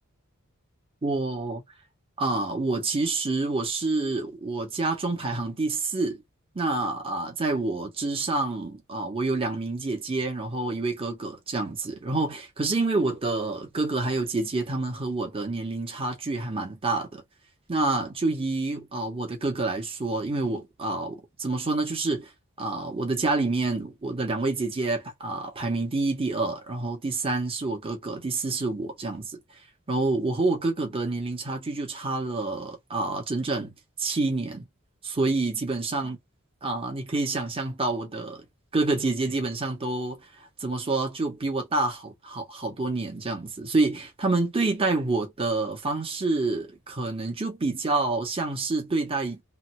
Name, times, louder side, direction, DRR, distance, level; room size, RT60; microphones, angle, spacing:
voice 1, 1.0-1.6 2.2-6.2 6.5-17.2 17.7-22.3 22.6-29.4 29.9-33.7 34.0-34.6 35.0-36.2 36.6-38.4 38.7-40.2 40.6-49.4, right 3 dB, 25° right, 0.9 m, -28 dB
3.3 x 2.1 x 3.0 m
head